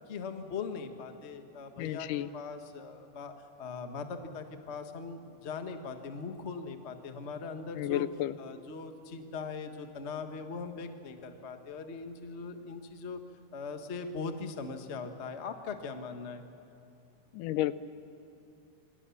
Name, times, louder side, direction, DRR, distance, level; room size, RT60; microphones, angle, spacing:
voice 1, 0.1-8.1 8.4-13.2 13.5-16.4, left 4 dB, 40° left, 6 dB, 0.9 m, -40 dB
voice 2, 1.8-2.3 7.8-8.4 17.3-17.9, left 13 dB, 90° left, 15 dB, 2.3 m, -32 dB
27.0 x 24.5 x 7.1 m, 2.9 s
omnidirectional pair, 3.6 m